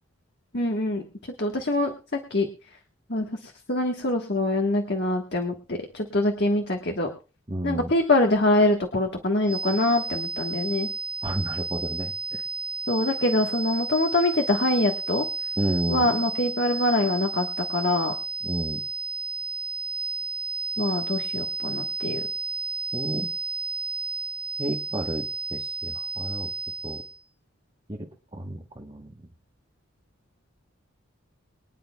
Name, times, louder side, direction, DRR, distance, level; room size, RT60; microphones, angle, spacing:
voice 1, 0.5-1.0 1.4-2.5 3.1-7.1 7.6-10.9 12.9-15.2 15.9-18.1 20.8-22.2, left 2 dB, 50° left, 2 dB, 1.4 m, -24 dB
voice 2, 7.5-7.9 11.2-12.4 15.6-16.1 18.4-18.8 22.9-23.4 24.6-26.5 26.8-27.0 27.9-29.3, right 1 dB, 25° right, 0 dB, 1.1 m, -31 dB
sound 1, 9.4-27.2, right 3 dB, 10° left, 2.2 m, -32 dB
23.5 x 10.0 x 2.3 m, 0.34 s
head